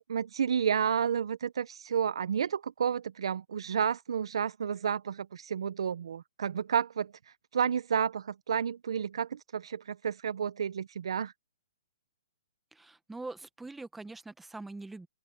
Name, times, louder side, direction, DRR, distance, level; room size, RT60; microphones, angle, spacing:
voice 1, 0.0-7.1 7.5-11.3, right 8 dB, 75° right, 0.5 m, -31 dB
voice 2, 12.7-15.1, right 2 dB, 5° right, 1.0 m, -43 dB
open air
hypercardioid pair, 160°, 3 cm